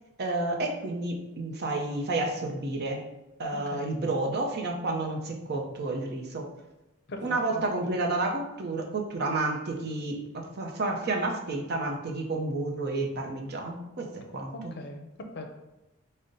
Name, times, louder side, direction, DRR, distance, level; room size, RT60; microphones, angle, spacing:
voice 1, 0.2-3.0 3.4-6.5 7.2-14.5, right 2 dB, 50° right, 2 dB, 0.6 m, -30 dB
voice 2, 7.1-7.6 14.5-15.1 15.3-15.5, left 2 dB, 50° left, 4 dB, 0.6 m, -40 dB
5.2 x 2.1 x 3.8 m, 0.98 s
head